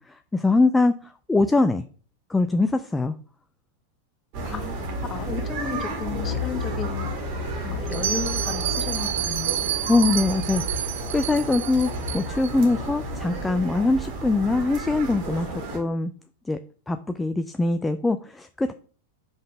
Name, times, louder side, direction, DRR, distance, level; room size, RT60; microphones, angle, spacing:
voice 1, 0.1-1.8 2.3-3.1 9.9-15.5 15.7-16.1 16.5-16.6 16.9-18.7, left 3 dB, 10° left, 0.3 m, -23 dB
sound 1, 4.3-15.8, right 1 dB, 45° right, 1.8 m, -31 dB
voice 2, 4.4-7.1 7.6-9.7, left 7 dB, 25° left, 0.9 m, -34 dB
Bell, 7.9-12.5, right 11 dB, 60° right, 0.4 m, -29 dB
5.2 x 3.8 x 5.0 m
figure-of-eight pair, 90°, 0 cm